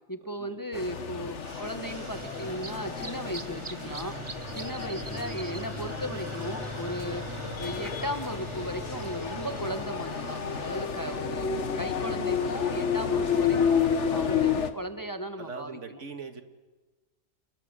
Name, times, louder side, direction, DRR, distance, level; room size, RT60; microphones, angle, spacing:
voice 1, 0.1-4.2 4.5-7.3 7.6-16.0, equal, 15° left, 8 dB, 1.3 m, -36 dB
sound 1, 0.7-14.7, left 7 dB, 70° left, 1.5 m, -31 dB
sound 2, 1.4-11.3, right 3 dB, 25° right, 1.0 m, -41 dB
voice 2, 15.4-16.4, right 4 dB, 80° right, 7 dB, 2.3 m, -41 dB
28.5 x 21.5 x 8.2 m, 1.2 s
omnidirectional pair, 1.2 m